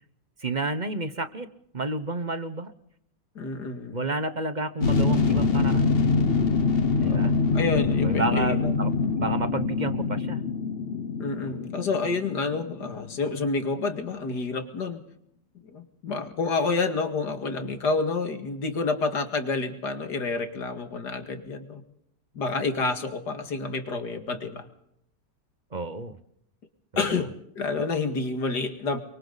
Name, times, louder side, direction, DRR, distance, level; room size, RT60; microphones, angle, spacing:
voice 1, 0.4-1.5 1.7-2.7 3.9-6.0 7.0-7.4 8.0-10.4 25.7-26.2 26.9-27.3, right 2 dB, 30° right, 11 dB, 1.0 m, -31 dB
voice 2, 3.4-4.1 7.1-8.7 11.2-15.0 15.7-21.8 22.3-24.7 27.0-29.0, left 4 dB, 65° left, 6 dB, 2.6 m, -29 dB
sound 1, 4.8-13.3 13.6-13.7, left 4 dB, 40° left, 1.1 m, -25 dB
28.5 x 24.0 x 4.1 m, 0.73 s
omnidirectional pair, 1.9 m